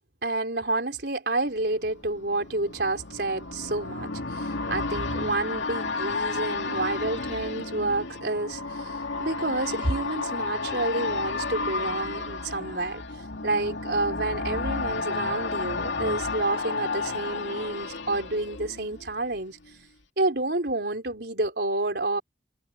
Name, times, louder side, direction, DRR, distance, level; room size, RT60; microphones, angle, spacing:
voice 1, 0.2-8.9 9.2-13.0 13.4-19.6 20.2-22.2, right 2 dB, 60° right, 4.3 m, -29 dB
sound 1, 1.6-19.4 19.7-19.8, left 3 dB, 85° left, 2.5 m, -32 dB
head